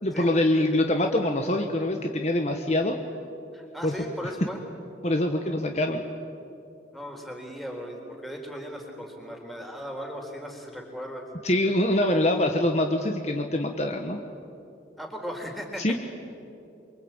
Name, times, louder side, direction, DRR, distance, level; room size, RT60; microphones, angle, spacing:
voice 1, 0.0-3.0 3.8-3.9 5.0-6.0 11.4-14.2 15.8-15.9, left 1 dB, 35° left, 4 dB, 1.4 m, -24 dB
voice 2, 3.5-4.6 6.9-11.2 15.0-15.8, equal, ahead, 1 dB, 4.0 m, -37 dB
28.0 x 23.5 x 8.9 m, 2.7 s
head